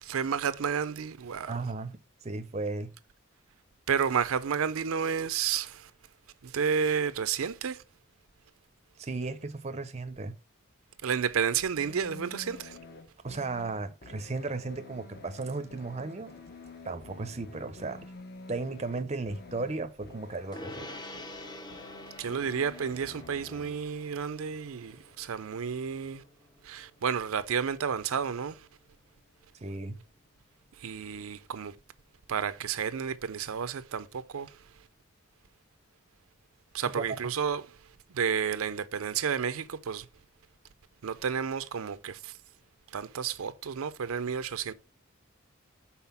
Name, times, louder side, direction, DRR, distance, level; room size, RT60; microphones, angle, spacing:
voice 1, 0.0-1.5 3.9-5.9 6.4-7.8 11.0-12.8 22.2-26.2 26.6-28.6 30.8-31.7 32.3-34.5 36.7-37.6 38.1-40.1 41.0-42.3 42.9-44.7, right 7 dB, 80° right, 0.5 m, -31 dB
voice 2, 1.5-2.0 2.2-2.9 9.0-10.3 13.2-16.3 16.8-18.1 18.5-20.9 29.6-30.0 36.9-37.0, right 3 dB, 30° right, 0.5 m, -35 dB
sound 1, 11.8-23.8, left 3 dB, 50° left, 1.0 m, -49 dB
Gong, 20.5-30.2, left 1 dB, 20° left, 0.6 m, -49 dB
5.7 x 4.2 x 5.7 m
head